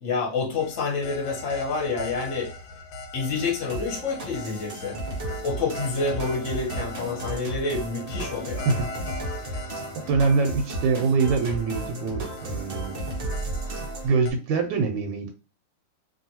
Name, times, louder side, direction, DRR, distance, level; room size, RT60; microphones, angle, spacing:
voice 1, 0.0-2.5 3.1-5.0 5.4-8.7, left 4 dB, 50° left, -1 dB, 1.2 m, -28 dB
atmo element, 0.6-14.3, left 2 dB, 80° left, 1.3 m, -41 dB
sound 1, 3.7-14.1, right 2 dB, 50° right, 0.7 m, -34 dB
voice 2, 10.1-13.0 13.3-13.4 14.0-15.3, right 4 dB, 85° right, 4 dB, 1.3 m, -24 dB
3.0 x 2.5 x 2.7 m, 0.34 s
omnidirectional pair, 2.0 m